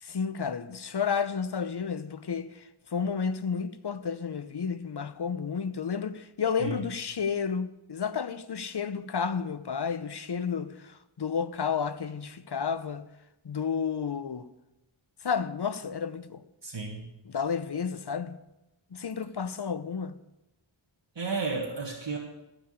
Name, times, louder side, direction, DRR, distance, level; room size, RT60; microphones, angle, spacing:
voice 1, 0.0-13.1 13.4-14.5 15.2-16.4 17.2-18.4 18.9-20.2, left 6 dB, 55° left, 0.8 m, -31 dB
voice 2, 16.6-17.1 21.2-22.2, right 4 dB, 60° right, 1.7 m, -32 dB
14.0 x 5.0 x 8.1 m
wide cardioid pair, 75°, 49 cm